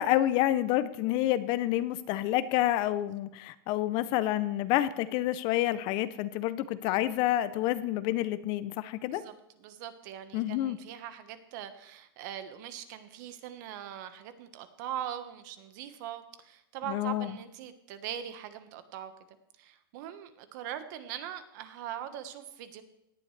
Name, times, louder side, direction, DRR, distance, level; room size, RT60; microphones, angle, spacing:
voice 1, 0.0-9.2 10.3-10.8 16.9-17.3, left 14 dB, 35° left, 14 dB, 0.6 m, -28 dB
voice 2, 9.6-19.1 19.6-22.8, right 10 dB, 50° right, 9 dB, 1.4 m, -41 dB
18.0 x 11.0 x 3.3 m, 0.85 s
supercardioid pair, 155°, 13 cm